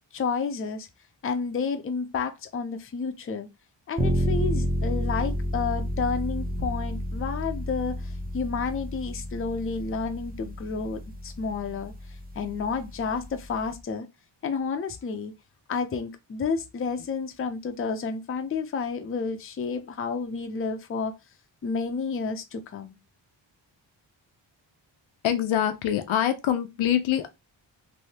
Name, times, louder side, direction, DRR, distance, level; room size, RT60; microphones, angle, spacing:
voice 1, 0.1-0.9 1.2-3.5 3.9-11.9 12.3-14.1 14.4-15.3 15.7-21.2 21.6-23.0, left 5 dB, 30° left, 0.5 m, -30 dB
sound 1, 4.0-13.7, equal, 20° right, 0.6 m, -31 dB
voice 2, 25.2-27.3, left 10 dB, 85° left, 0.6 m, -24 dB
3.2 x 2.7 x 2.8 m
wide cardioid pair, 100°, 46 cm